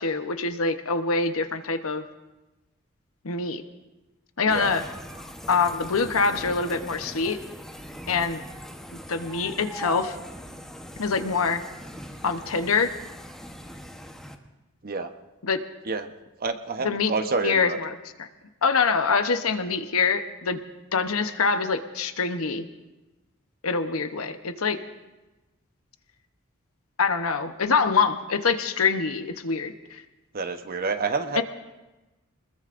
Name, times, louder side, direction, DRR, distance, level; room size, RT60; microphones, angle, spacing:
voice 1, 0.0-2.0 3.2-3.6 4.4-4.8 5.5-7.4 8.1-8.4 9.1-10.2 11.0-11.6 12.2-13.0 15.4-15.6 16.8-17.1 17.4-18.3 18.6-20.6 20.9-22.7 23.6-24.8 27.0-30.0 31.3-31.4, left 5 dB, 80° left, 8 dB, 0.9 m, -25 dB
voice 2, 4.4-4.8 14.8-15.1 15.9-16.1 16.4-17.8 30.3-31.4, right 4 dB, 45° right, 7 dB, 0.9 m, -28 dB
sound 1, 4.5-14.3, equal, 5° left, 1.0 m, -41 dB
26.0 x 20.5 x 2.6 m, 1.1 s
head